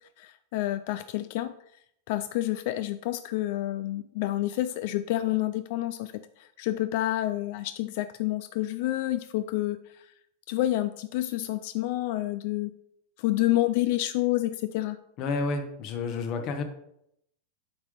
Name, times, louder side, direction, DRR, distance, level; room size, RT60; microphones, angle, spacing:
voice 1, 0.2-1.5 2.1-10.1 10.5-12.7 13.2-15.0, left 15 dB, 50° left, 12 dB, 0.3 m, -29 dB
voice 2, 15.2-16.6, left 4 dB, 35° left, 6 dB, 0.9 m, -30 dB
8.5 x 3.7 x 4.8 m, 0.75 s
supercardioid pair, 165°, 0 cm